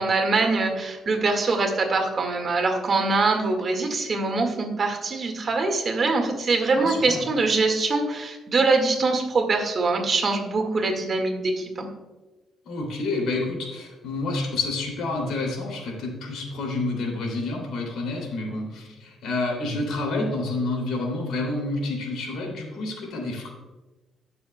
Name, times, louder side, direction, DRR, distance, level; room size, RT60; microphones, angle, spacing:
voice 1, 0.0-11.9, right 3 dB, 45° right, 3 dB, 1.9 m, -23 dB
voice 2, 6.8-7.2 12.6-23.5, left 2 dB, 80° left, 0 dB, 2.8 m, -29 dB
20.0 x 6.8 x 2.3 m, 1.1 s
cardioid pair, 90°, 0 cm